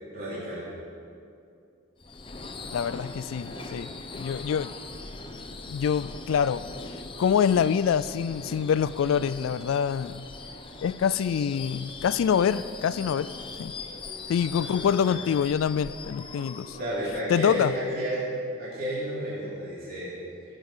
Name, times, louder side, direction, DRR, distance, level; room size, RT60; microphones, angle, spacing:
voice 1, 0.1-0.7 14.7-14.8 16.7-18.2 18.6-20.1, equal, 45° right, -9 dB, 3.8 m, -31 dB
Subway metro underground / Screech, 2.0-17.9, left 3 dB, 25° left, 0.8 m, -41 dB
voice 2, 2.7-4.7 5.7-6.7 7.2-10.2 10.8-13.3 13.6-13.7 14.3-16.8 17.3-17.7, left 7 dB, 75° left, 15 dB, 0.3 m, -25 dB
15.5 x 7.5 x 6.6 m, 2.4 s
head